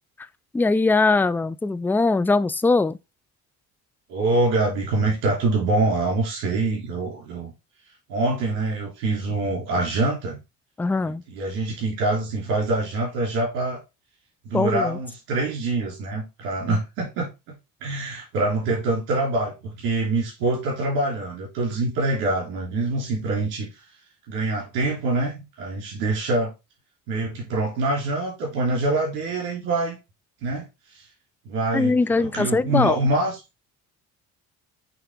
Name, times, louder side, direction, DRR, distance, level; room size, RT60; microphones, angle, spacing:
voice 1, 0.5-3.0 10.8-11.2 14.5-15.0 16.7-16.8 31.7-33.0, left 3 dB, 5° left, 0.3 m, -21 dB
voice 2, 4.1-7.5 8.1-10.4 11.3-13.8 14.4-17.3 17.8-23.7 24.3-26.5 27.1-30.0 30.4-30.6 30.9-31.0 31.4-33.4, right 2 dB, 80° right, 3.1 m, -25 dB
8.0 x 3.3 x 3.6 m
hypercardioid pair, 60°, 40 cm